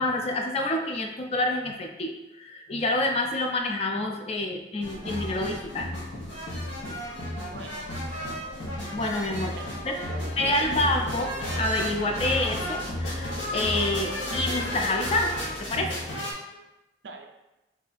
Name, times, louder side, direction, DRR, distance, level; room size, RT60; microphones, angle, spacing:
voice 1, 0.0-5.9 8.9-9.6 9.8-9.9 10.4-16.0 16.5-16.6, left 2 dB, 35° left, 2 dB, 0.3 m, -28 dB
sound 1, 4.8-16.3, left 1 dB, 85° left, 0.8 m, -33 dB
voice 2, 7.5-7.9 9.4-10.6 17.0-17.3, right 3 dB, 75° right, 3 dB, 0.4 m, -42 dB
Singing / Musical instrument, 10.6-15.7, right 1 dB, 15° right, 0.6 m, -41 dB
2.6 x 2.4 x 3.9 m, 0.98 s
head